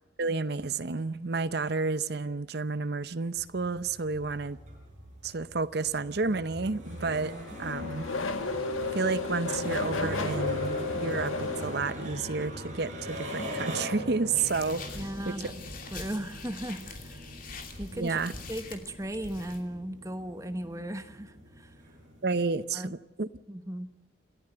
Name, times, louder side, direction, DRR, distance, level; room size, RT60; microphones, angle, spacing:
voice 1, 0.2-4.6 5.2-7.3 7.6-8.1 8.9-15.0 15.3-15.5 18.0-18.3 22.2-23.3, right 4 dB, 50° right, 0.7 m, -31 dB
sound 1, 3.4-22.7, equal, 35° right, 6.0 m, -40 dB
Race car auto racing / Accelerating revving vroom, 6.9-12.4, left 3 dB, 90° left, 1.7 m, -34 dB
sound 2, 14.3-19.6, left 4 dB, 45° left, 2.8 m, -44 dB
voice 2, 14.9-17.3 17.8-18.2 18.5-21.7 22.7-23.0 23.5-23.9, right 1 dB, 15° right, 1.1 m, -37 dB
28.5 x 14.0 x 7.9 m
head